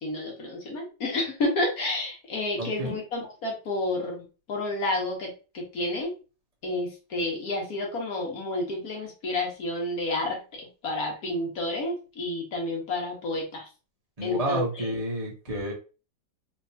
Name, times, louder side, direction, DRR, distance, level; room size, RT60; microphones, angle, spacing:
voice 1, 0.0-6.1 6.6-13.6 14.2-14.9, left 2 dB, 55° left, 0 dB, 1.3 m, -30 dB
voice 2, 2.6-3.0 14.2-15.7, right 1 dB, 45° right, -2 dB, 0.5 m, -30 dB
3.4 x 2.9 x 2.7 m, 0.33 s
omnidirectional pair, 2.1 m